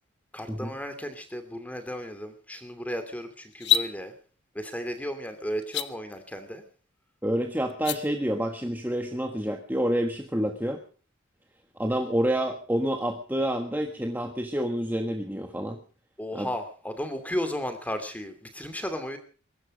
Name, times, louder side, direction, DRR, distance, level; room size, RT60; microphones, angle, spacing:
voice 1, 0.3-4.1 4.5-6.6 16.2-19.2, equal, 5° left, 8 dB, 2.6 m, -34 dB
sound 1, 3.5-3.9 5.6-5.9 7.7-8.0, left 9 dB, 55° left, 1.1 m, -24 dB
voice 2, 7.2-10.8 11.8-15.8 16.3-16.5, equal, 10° right, 4 dB, 1.4 m, -28 dB
22.0 x 12.5 x 5.1 m, 0.40 s
head